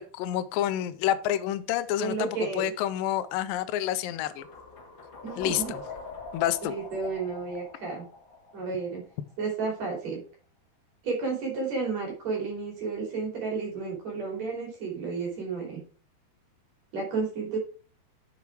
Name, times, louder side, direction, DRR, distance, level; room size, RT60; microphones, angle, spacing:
voice 1, 0.0-2.3 2.6-4.4 5.4-5.8 6.3-6.7, left 12 dB, 85° left, 11 dB, 2.0 m, -28 dB
voice 2, 2.0-2.7 5.2-5.7 6.6-8.0 8.5-9.0 9.4-10.2 11.0-15.8 16.9-17.6, right 4 dB, 45° right, -1 dB, 3.9 m, -32 dB
sound 1, 4.4-9.3, left 4 dB, 45° left, 1.7 m, -43 dB
7.2 x 7.1 x 4.7 m, 0.39 s
omnidirectional pair, 4.8 m